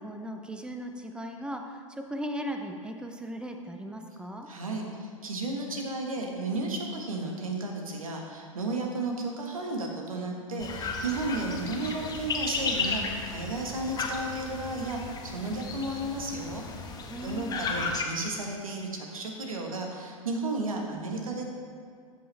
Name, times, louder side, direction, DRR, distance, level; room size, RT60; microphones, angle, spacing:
voice 1, 0.0-4.5 17.1-17.7, equal, 5° right, 4 dB, 0.7 m, -37 dB
voice 2, 4.5-16.6 17.2-21.4, right 2 dB, 80° right, 1 dB, 1.5 m, -33 dB
sound 1, 10.6-18.0, left 4 dB, 20° left, 1.0 m, -34 dB
13.5 x 5.3 x 3.4 m, 2.2 s
hypercardioid pair, 95°, 17 cm